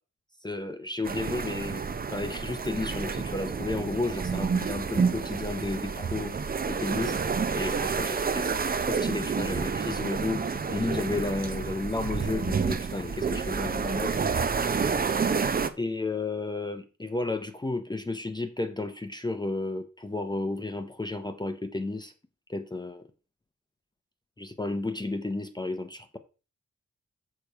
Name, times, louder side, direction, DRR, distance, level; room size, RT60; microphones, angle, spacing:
voice 1, 0.4-1.8 2.1-6.3 6.7-7.2 7.5-14.5 15.8-22.1 22.5-23.0 24.4-26.2, left 2 dB, 15° left, 0.6 m, -32 dB
sound 1, 1.0-15.7, right 5 dB, 30° right, 0.5 m, -29 dB
6.8 x 6.7 x 4.5 m
wide cardioid pair, 170°, 30 cm